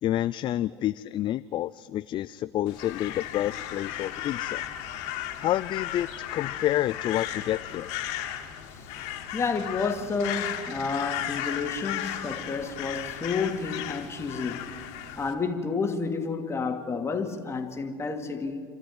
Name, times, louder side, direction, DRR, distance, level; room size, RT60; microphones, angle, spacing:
voice 1, 0.0-4.6 5.4-7.9, left 13 dB, 45° left, 0.5 m, -29 dB
Crow, 2.7-15.3, left 11 dB, 65° left, 2.7 m, -35 dB
voice 2, 9.3-14.7 15.2-18.6, left 4 dB, 25° left, 2.6 m, -30 dB
27.5 x 13.5 x 9.4 m
supercardioid pair, 100°, 12 cm